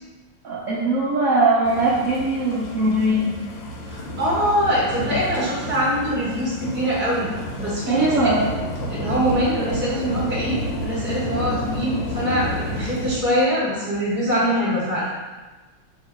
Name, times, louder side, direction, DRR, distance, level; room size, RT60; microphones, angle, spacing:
voice 1, 0.4-3.3 7.9-8.5, right 2 dB, 75° right, -7 dB, 0.7 m, -20 dB
sound 1, 1.6-13.2, equal, 75° left, 1.3 m, -30 dB
voice 2, 3.9-7.3 7.6-8.1 8.9-15.1, equal, 10° right, -8 dB, 0.7 m, -23 dB
3.0 x 2.9 x 4.4 m, 1.2 s
omnidirectional pair, 2.2 m